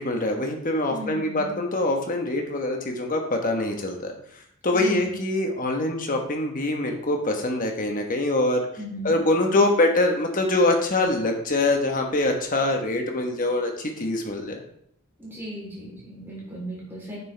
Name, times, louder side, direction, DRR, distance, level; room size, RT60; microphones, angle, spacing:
voice 1, 0.0-4.1 4.6-8.6 9.0-14.6, left 2 dB, 40° left, 3 dB, 1.2 m, -24 dB
voice 2, 0.9-1.5 4.7-5.1 8.8-9.2 15.2-17.2, right 1 dB, 10° right, -6 dB, 3.6 m, -36 dB
8.9 x 7.0 x 3.4 m, 0.71 s
head